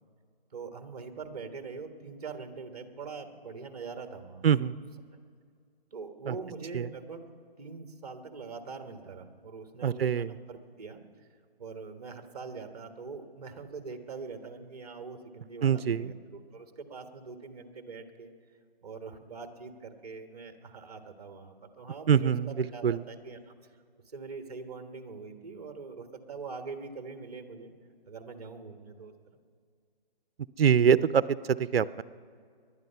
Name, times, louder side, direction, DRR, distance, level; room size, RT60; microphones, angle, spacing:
voice 1, 0.5-4.4 5.9-7.3 7.6-11.0 11.6-18.3 18.8-23.5 24.1-27.7 28.0-29.4, right 4 dB, 40° right, 7 dB, 1.4 m, -43 dB
voice 2, 4.4-4.7 6.3-6.4 6.7-6.8 9.8-10.3 15.6-16.1 22.1-23.0 30.6-32.0, right 8 dB, 75° right, 17 dB, 0.6 m, -24 dB
20.0 x 11.5 x 5.6 m, 2.1 s
hypercardioid pair, 170°, 30 cm